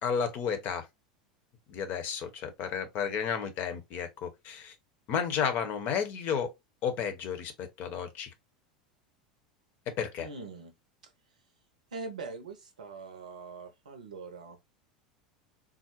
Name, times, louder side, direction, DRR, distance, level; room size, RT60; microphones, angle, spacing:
voice 1, 0.0-0.9 1.7-4.7 5.1-6.5 6.8-8.3 9.9-10.3, left 7 dB, 45° left, 0.8 m, -32 dB
voice 2, 10.2-10.7 11.0-11.1 11.9-14.8, right 4 dB, 75° right, 0.6 m, -43 dB
3.7 x 2.1 x 2.9 m
figure-of-eight pair, 80°, 4 cm